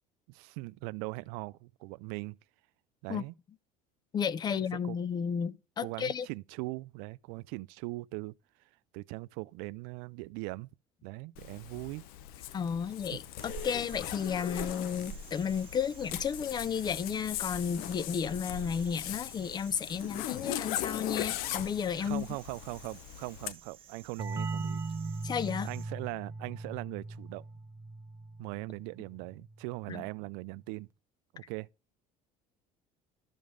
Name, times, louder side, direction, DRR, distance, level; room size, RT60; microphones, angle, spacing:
voice 1, 0.3-2.4 3.0-3.3 4.5-5.0 5.8-8.3 8.9-10.7 11.0-12.1 13.1-13.2 22.0-24.8 25.6-27.4 28.4-30.9 31.3-31.7, right 24 dB, 85° right, 0.4 m, -40 dB
voice 2, 4.1-6.3 12.5-22.3 25.2-25.7 29.9-30.0, left 7 dB, 30° left, 0.5 m, -33 dB
Zipper (clothing), 11.4-23.5, left 12 dB, 75° left, 0.7 m, -40 dB
sound 1, 13.4-25.9, right 7 dB, 35° right, 1.3 m, -51 dB
sound 2, 24.2-29.6, right 3 dB, 20° right, 0.7 m, -39 dB
12.5 x 5.2 x 3.7 m
cardioid pair, 130°, 15 cm